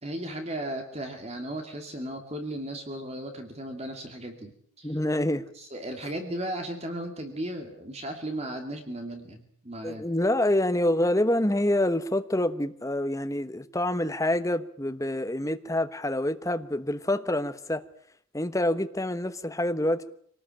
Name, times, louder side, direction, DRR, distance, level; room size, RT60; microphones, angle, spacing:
voice 1, 0.0-5.0 5.5-10.1, right 1 dB, 30° right, 4 dB, 2.6 m, -36 dB
voice 2, 4.8-5.5 9.8-17.8 18.3-20.0, left 1 dB, 15° left, 9 dB, 1.1 m, -26 dB
25.5 x 19.0 x 9.0 m, 0.67 s
head